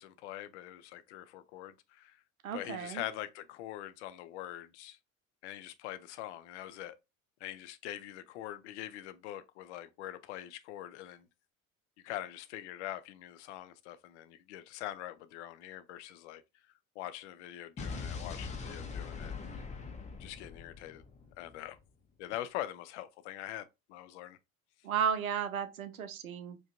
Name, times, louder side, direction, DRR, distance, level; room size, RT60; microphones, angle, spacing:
voice 1, 0.0-2.2 2.5-5.0 5.4-7.0 7.4-11.3 12.0-16.4 17.0-19.4 20.2-21.0 21.4-21.8 22.2-24.4, left 13 dB, 55° left, 0.5 m, -43 dB
voice 2, 2.4-3.0 24.8-26.6, right 7 dB, 80° right, 0.6 m, -34 dB
Explosion, 17.8-21.8, left 5 dB, 15° left, 0.6 m, -42 dB
4.9 x 2.3 x 2.5 m
figure-of-eight pair, 65°, 42 cm